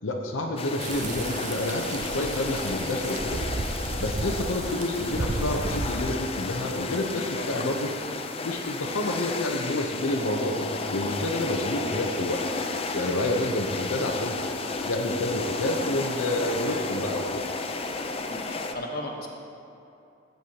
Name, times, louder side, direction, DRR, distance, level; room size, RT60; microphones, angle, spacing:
voice 1, 0.0-3.4 4.0-7.9 8.4-12.4 12.9-14.4 14.8-17.4, left 1 dB, 85° left, 0 dB, 0.8 m, -29 dB
sound 1, 0.6-18.7, left 3 dB, 30° left, 0.5 m, -33 dB
sound 2, 0.8-6.0, right 2 dB, 40° right, 0.5 m, -33 dB
voice 2, 7.1-7.5 11.8-12.1 18.3-19.3, left 1 dB, 50° left, 0 dB, 1.2 m, -36 dB
15.5 x 7.9 x 2.9 m, 2.8 s
head